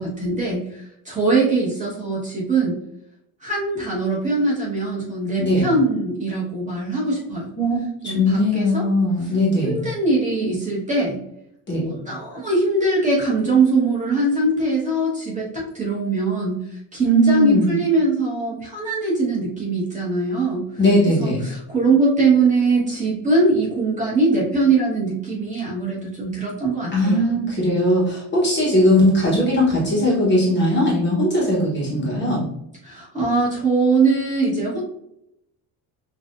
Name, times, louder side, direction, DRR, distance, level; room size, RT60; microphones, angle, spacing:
voice 1, 0.0-2.8 3.4-7.5 8.0-8.8 9.6-11.2 11.7-20.6 21.2-27.3 32.8-34.8, right 3 dB, 15° right, -6 dB, 1.3 m, -21 dB
voice 2, 8.0-9.8 11.7-11.9 17.0-17.7 20.8-21.4 26.9-32.4, left 1 dB, 25° left, -6 dB, 1.1 m, -19 dB
6.0 x 2.6 x 2.5 m, 0.78 s
cardioid pair, 175°, 45 cm